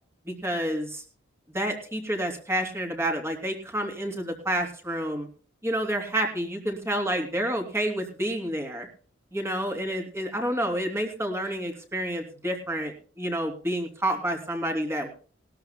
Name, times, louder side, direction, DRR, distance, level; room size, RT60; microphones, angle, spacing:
voice 1, 0.3-1.0 1.5-5.3 5.6-8.9 9.3-15.1, right 1 dB, 15° right, 3 dB, 3.1 m, -29 dB
21.0 x 13.0 x 2.2 m, 0.40 s
head